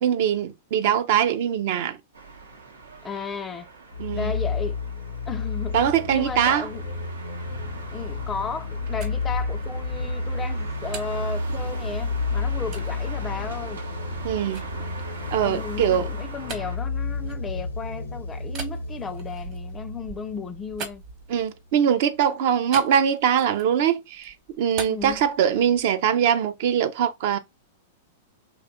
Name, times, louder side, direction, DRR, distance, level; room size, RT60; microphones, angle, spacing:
voice 1, 0.0-2.0 4.0-4.3 5.7-6.7 14.2-14.6 15.3-16.1 21.3-27.4, right 9 dB, 60° right, 0.5 m, -22 dB
sound 1, 2.1-16.8, right 4 dB, 90° right, 0.7 m, -41 dB
voice 2, 3.0-3.7 4.1-4.8 5.3-5.8 6.1-6.9 7.9-13.8 15.4-21.0 24.9-25.2, left 5 dB, 20° left, 0.4 m, -34 dB
sound 2, 3.9-21.3, left 4 dB, 85° left, 0.8 m, -31 dB
sound 3, 8.7-12.1 12.7-12.9 13.5-17.9 18.5-21.7 22.7-23.8 24.1-25.9, right 6 dB, 40° right, 0.9 m, -41 dB
2.7 x 2.3 x 3.6 m
hypercardioid pair, 110°, 0 cm